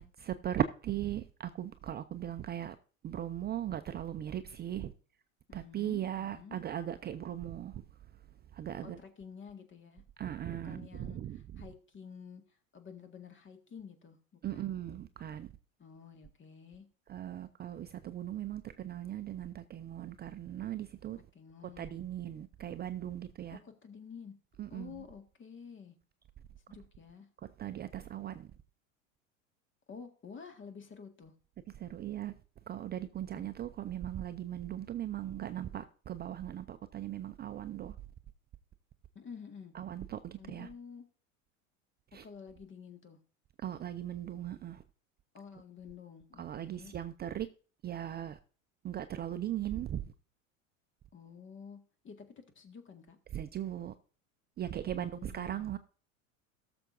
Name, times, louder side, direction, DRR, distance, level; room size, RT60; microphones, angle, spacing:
voice 1, 0.0-2.8 3.0-4.9 5.5-7.8 8.5-9.0 10.2-11.6 14.4-15.5 17.1-21.2 21.8-23.6 24.6-25.0 27.6-28.5 31.8-32.3 32.7-38.0 39.7-40.7 42.1-42.2 43.6-44.8 46.4-47.5 47.8-48.4 48.8-50.0 53.3-53.9 54.6-55.8, right 11 dB, 25° right, 0.5 m, -38 dB
voice 2, 5.5-6.6 8.8-10.0 10.6-12.4 12.7-14.7 15.8-16.8 21.3-22.0 23.5-24.3 24.7-26.0 26.7-27.3 29.9-31.3 33.3-33.5 39.2-39.7 40.4-41.0 42.2-43.2 45.3-46.9 51.1-51.8 52.0-53.2 54.9-55.7, left 6 dB, 30° left, 1.8 m, -50 dB
17.5 x 7.0 x 2.6 m
hypercardioid pair, 85°, 40 cm